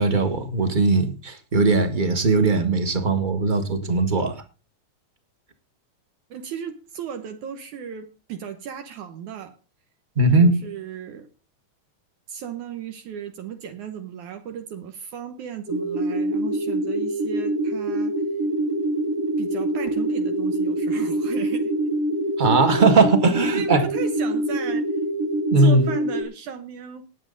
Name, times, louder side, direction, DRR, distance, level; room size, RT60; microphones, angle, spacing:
voice 1, 0.0-4.4 10.1-10.6 22.4-23.9 25.5-25.9, right 3 dB, 30° right, 0.8 m, -19 dB
voice 2, 6.3-9.6 10.4-11.3 12.3-18.2 19.4-21.7 23.4-25.0 25.6-27.1, right 8 dB, 70° right, 2.5 m, -36 dB
sound 1, 15.7-26.2, right 1 dB, 45° right, 3.3 m, -25 dB
19.0 x 7.7 x 3.9 m
omnidirectional pair, 3.7 m